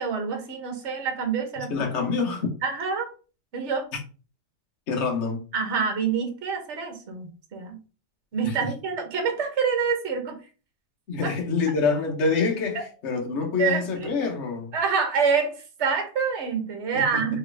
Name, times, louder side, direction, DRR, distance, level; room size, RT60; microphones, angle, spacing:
voice 1, 0.0-1.9 2.6-3.1 3.5-3.9 5.5-7.8 8.3-10.4 11.2-11.3 12.7-12.9 13.6-14.1 14.7-17.4, right 5 dB, 45° right, 1.3 m, -27 dB
voice 2, 1.6-2.5 4.9-5.4 8.4-8.5 11.1-14.7 16.9-17.2, left 4 dB, 50° left, 1.3 m, -26 dB
4.3 x 3.3 x 3.4 m
omnidirectional pair, 1.8 m